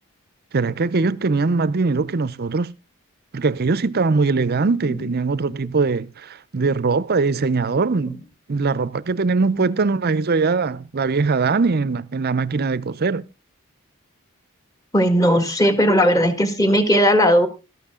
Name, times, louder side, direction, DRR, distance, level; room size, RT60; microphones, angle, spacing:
voice 1, 0.5-2.7 3.3-8.2 8.5-13.2, right 4 dB, 45° right, 0.6 m, -21 dB
voice 2, 14.9-17.5, equal, 15° left, 1.7 m, -17 dB
13.0 x 11.5 x 3.7 m
head